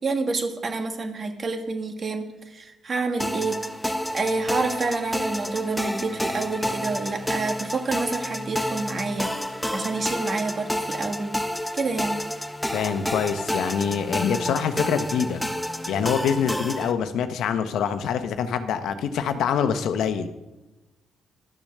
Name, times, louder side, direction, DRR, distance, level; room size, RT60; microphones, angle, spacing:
voice 1, 0.0-3.6 4.1-9.3 9.7-11.3 11.7-12.2, right 3 dB, 40° right, 5 dB, 1.7 m, -28 dB
sound 1, 3.2-16.9, equal, 5° left, 0.9 m, -30 dB
voice 2, 12.7-15.4 15.9-20.3, left 7 dB, 80° left, 9 dB, 0.9 m, -25 dB
11.5 x 7.3 x 6.6 m, 1.1 s
cardioid pair, 90°, 0 cm